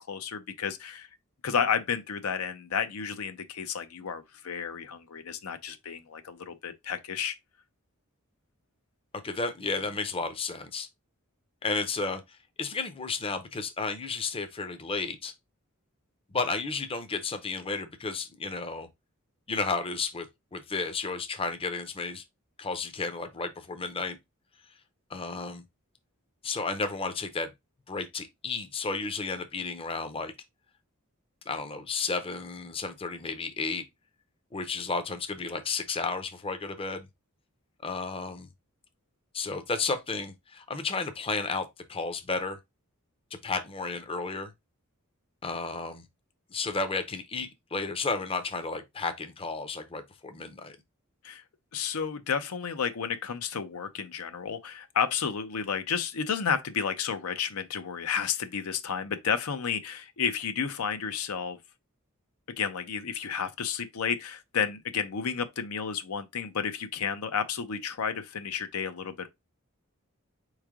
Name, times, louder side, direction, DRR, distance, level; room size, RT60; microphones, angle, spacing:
voice 1, 0.1-1.1 1.4-7.4 51.2-51.4 51.7-61.6 62.6-69.3, left 7 dB, 80° left, 0.6 m, -31 dB
voice 2, 9.2-10.9 11.6-12.2 12.6-15.3 16.3-18.9 19.5-20.3 20.5-22.2 22.6-24.2 25.1-25.6 26.4-27.5 27.9-30.3 31.5-33.8 34.5-37.1 37.8-38.5 39.3-42.6 43.4-44.5 45.4-46.0 46.5-50.7, left 4 dB, 25° left, 0.6 m, -32 dB
4.4 x 3.2 x 3.5 m
head